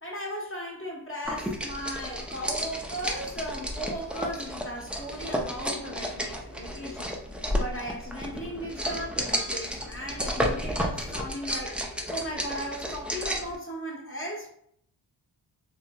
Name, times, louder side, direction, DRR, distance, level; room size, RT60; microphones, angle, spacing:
voice 1, 0.0-7.2 7.5-11.8 12.1-14.5, equal, 25° left, -2 dB, 1.0 m, -37 dB
sound 1, 1.2-13.6, equal, ahead, 0.5 m, -32 dB
3.1 x 2.5 x 2.3 m, 0.67 s
cardioid pair, 50°, 48 cm